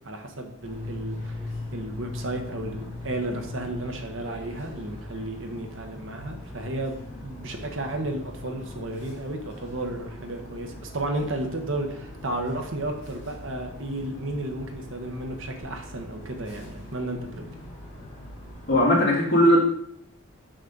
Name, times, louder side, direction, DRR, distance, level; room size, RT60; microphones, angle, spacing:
voice 1, 0.0-1.4 1.7-7.0 7.2-17.5, right 1 dB, 60° right, 4 dB, 1.0 m, -33 dB
sound 1, 0.6-18.8, left 2 dB, 35° left, 2.3 m, -40 dB
voice 2, 18.7-19.6, equal, 55° left, -5 dB, 2.4 m, -18 dB
6.6 x 6.2 x 3.9 m, 0.70 s
head